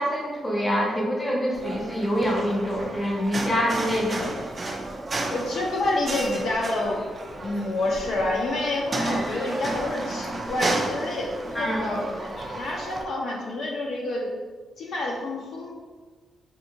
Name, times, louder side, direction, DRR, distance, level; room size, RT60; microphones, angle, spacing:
voice 1, 0.0-4.3 11.5-11.9, equal, 15° left, -3 dB, 0.6 m, -25 dB
sound 1, 1.5-13.0, right 2 dB, 25° right, 0.3 m, -32 dB
voice 2, 5.3-7.0 7.4-14.3 14.8-15.7, left 2 dB, 65° left, -1 dB, 0.5 m, -28 dB
3.6 x 2.6 x 2.8 m, 1.4 s
wide cardioid pair, 160°, 0 cm